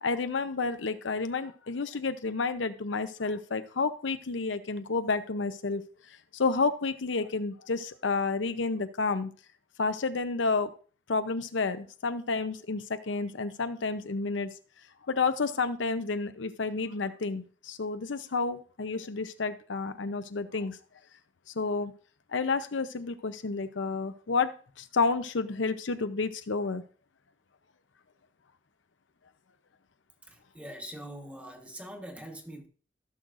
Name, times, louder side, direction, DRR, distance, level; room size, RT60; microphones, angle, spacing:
voice 1, 0.0-5.8 6.3-9.3 9.8-10.7 11.1-14.5 15.1-20.8 21.6-21.9 22.3-24.5 24.8-26.8, left 4 dB, 85° left, 0.7 m, -30 dB
voice 2, 30.3-32.7, equal, 10° right, 1.2 m, -43 dB
16.0 x 6.3 x 2.5 m
head